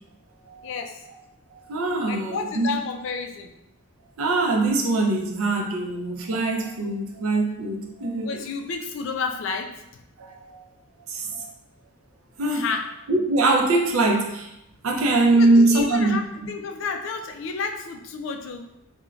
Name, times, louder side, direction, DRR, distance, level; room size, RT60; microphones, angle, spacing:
voice 1, 0.6-1.1 2.1-3.5 8.2-9.8 12.5-12.9 15.3-18.7, left 5 dB, 60° left, 5 dB, 0.3 m, -31 dB
voice 2, 1.5-2.7 4.2-8.4 10.2-10.6 11.1-11.5 12.4-12.7 13.1-14.5 14.8-16.2, right 2 dB, 80° right, 1 dB, 0.5 m, -22 dB
3.1 x 2.2 x 2.4 m, 0.83 s
head